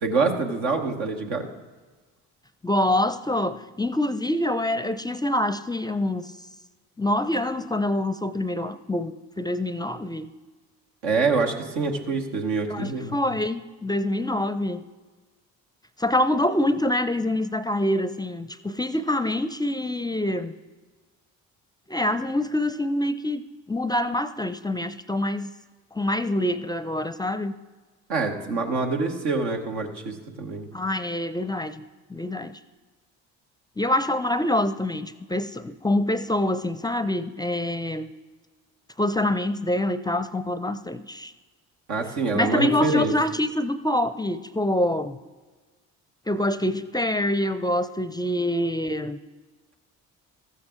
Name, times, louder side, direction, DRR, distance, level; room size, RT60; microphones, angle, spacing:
voice 1, 0.0-1.5 11.0-13.2 28.1-30.7 41.9-43.1, right 4 dB, 85° right, 2 dB, 1.3 m, -26 dB
voice 2, 2.6-6.3 7.0-10.3 12.7-14.8 16.0-20.6 21.9-23.4 23.7-25.5 25.9-27.5 30.7-31.8 32.1-32.6 33.8-38.1 39.0-41.3 42.3-45.2 46.3-49.2, left 1 dB, 10° left, 13 dB, 0.4 m, -25 dB
14.0 x 8.3 x 3.8 m, 1.3 s
hypercardioid pair, 55°, 37 cm